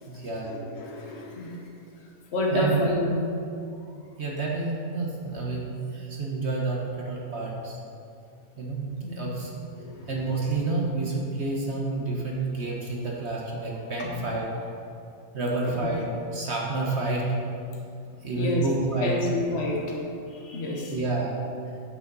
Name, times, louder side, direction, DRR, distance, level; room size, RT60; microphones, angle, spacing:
voice 1, 0.1-0.6 2.5-2.8 4.2-7.8 8.6-9.7 10.1-14.7 15.3-16.1 16.3-17.3 18.2-19.2 20.9-21.4, right 3 dB, 50° right, -2 dB, 1.5 m, -29 dB
voice 2, 0.8-1.6 2.3-3.3 9.0-9.3 9.8-9.9 14.0-14.1 18.4-18.6 19.0-19.8 20.4-20.9, left 1 dB, 50° left, -2 dB, 1.5 m, -28 dB
8.7 x 8.4 x 4.1 m, 2.5 s
omnidirectional pair, 1.5 m